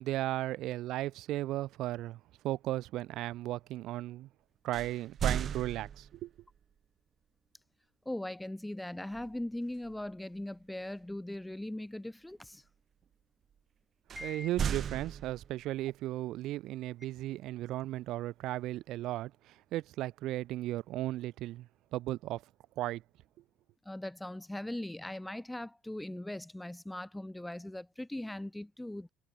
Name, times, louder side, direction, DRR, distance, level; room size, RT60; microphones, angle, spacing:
voice 1, 0.0-4.3 4.6-6.3 14.2-22.4 22.8-23.0, right 15 dB, 70° right, 0.5 m, -36 dB
sound 1, 4.7-6.4 9.1-9.4 9.8-10.1 14.1-15.8, right 8 dB, 50° right, 1.0 m, -36 dB
voice 2, 8.1-12.6 14.2-14.5 23.8-29.1, left 1 dB, 5° left, 2.4 m, -40 dB
supercardioid pair, 75°, 0 cm